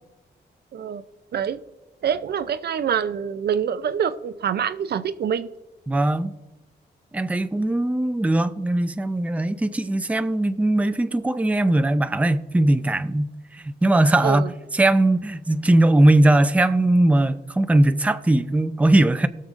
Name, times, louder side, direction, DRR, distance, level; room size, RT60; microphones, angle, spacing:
voice 1, 0.7-1.0 1.3-1.6 2.0-5.5 14.2-14.5, right 8 dB, 65° right, 0.5 m, -25 dB
voice 2, 5.9-6.3 7.1-19.3, right 1 dB, 10° right, 0.4 m, -20 dB
19.0 x 6.5 x 2.5 m
cardioid pair, 75°, 18 cm